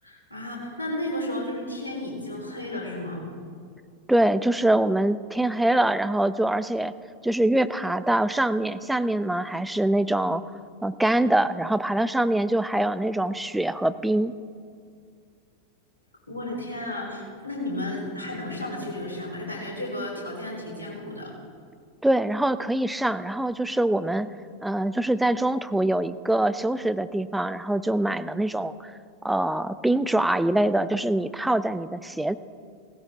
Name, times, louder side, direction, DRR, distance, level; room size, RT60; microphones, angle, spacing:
voice 1, 0.0-3.2 16.3-21.3, left 1 dB, 75° left, -3 dB, 4.1 m, -33 dB
voice 2, 4.1-6.9 7.2-10.4 10.8-14.3 22.0-24.3 24.6-28.9 29.2-32.4, right 1 dB, 5° right, 13 dB, 0.5 m, -24 dB
17.0 x 16.5 x 3.7 m, 2.2 s
figure-of-eight pair, 90°, 0 cm